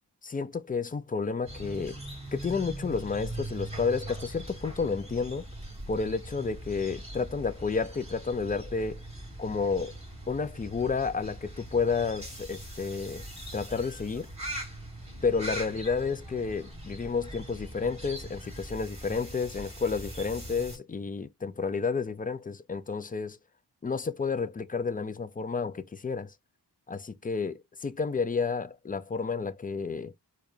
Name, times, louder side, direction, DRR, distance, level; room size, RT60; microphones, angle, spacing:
voice 1, 0.2-2.0 2.3-5.4 5.9-9.0 9.4-9.9 10.3-13.3 13.5-14.3 15.2-23.4 23.8-26.3 26.9-30.1, left 5 dB, 20° left, 0.3 m, -31 dB
sound 1, 1.5-20.8, right 1 dB, 15° right, 2.4 m, -41 dB
4.6 x 2.3 x 2.4 m
wide cardioid pair, 65°, 42 cm